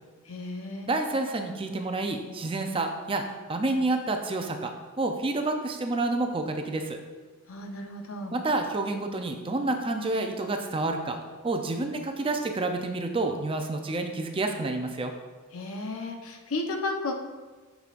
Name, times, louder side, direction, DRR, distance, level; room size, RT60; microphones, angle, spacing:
voice 1, 0.2-0.9 7.5-8.3 15.5-17.1, left 2 dB, 70° left, 3 dB, 0.8 m, -33 dB
voice 2, 0.8-7.0 8.3-11.2 11.4-15.1, right 2 dB, 25° right, 5 dB, 0.5 m, -29 dB
8.4 x 6.1 x 2.5 m, 1.3 s
head